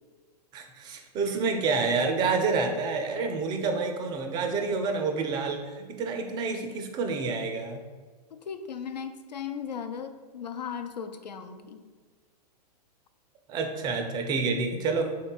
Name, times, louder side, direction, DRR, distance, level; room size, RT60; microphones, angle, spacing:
voice 1, 0.5-7.8 13.5-15.1, right 4 dB, 20° right, 4 dB, 0.3 m, -28 dB
voice 2, 8.3-11.8, left 7 dB, 80° left, 8 dB, 0.4 m, -37 dB
3.6 x 2.3 x 3.8 m, 1.5 s
figure-of-eight pair, 105°, 21 cm